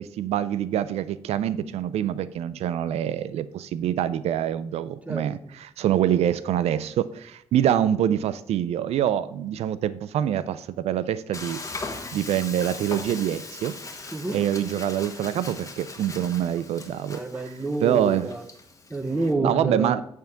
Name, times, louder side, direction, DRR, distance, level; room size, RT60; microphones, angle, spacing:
voice 1, 0.0-11.6 12.1-13.7 14.3-17.2 17.8-18.3 19.4-20.0, right 10 dB, 85° right, 15 dB, 0.4 m, -25 dB
voice 2, 5.1-5.5 14.1-14.4 17.1-18.4 18.9-20.0, right 2 dB, 15° right, 9 dB, 0.8 m, -28 dB
Frying (food), 11.3-19.3, left 3 dB, 30° left, 1.3 m, -39 dB
9.2 x 3.5 x 5.7 m, 0.72 s
cardioid pair, 85°, 11 cm